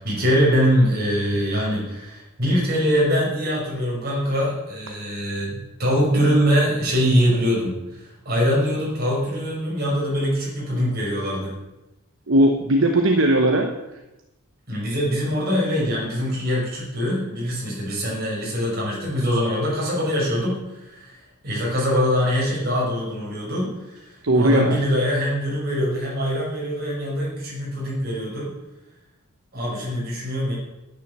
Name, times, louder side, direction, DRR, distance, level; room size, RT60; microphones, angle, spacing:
voice 1, 0.0-11.5 14.7-21.2 21.4-28.5 29.5-30.5, equal, 45° right, -4 dB, 5.5 m, -23 dB
voice 2, 12.3-13.7 24.2-24.8, right 1 dB, 65° right, 3 dB, 1.0 m, -18 dB
10.0 x 9.7 x 6.7 m, 0.99 s
head